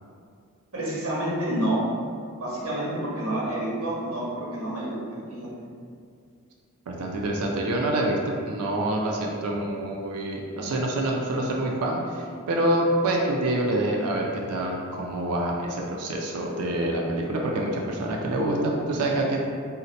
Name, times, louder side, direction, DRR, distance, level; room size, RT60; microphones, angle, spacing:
voice 1, 0.7-1.8 2.4-5.5, right 1 dB, 65° right, -7 dB, 1.0 m, -29 dB
voice 2, 6.9-8.2 8.4-19.4, right 1 dB, 80° right, -1 dB, 0.4 m, -26 dB
2.7 x 2.1 x 3.9 m, 2.2 s
head